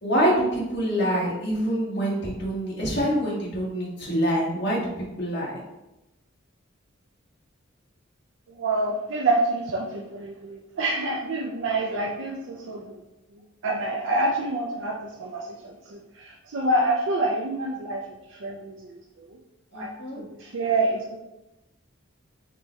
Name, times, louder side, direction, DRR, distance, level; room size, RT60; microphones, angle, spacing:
voice 1, 0.0-5.6 19.7-20.2, equal, 55° left, -4 dB, 1.6 m, -26 dB
voice 2, 8.6-13.0 13.6-18.0 18.3-19.3 19.7-21.2, right 2 dB, 65° right, -2 dB, 0.5 m, -27 dB
5.2 x 3.3 x 3.1 m, 0.95 s
head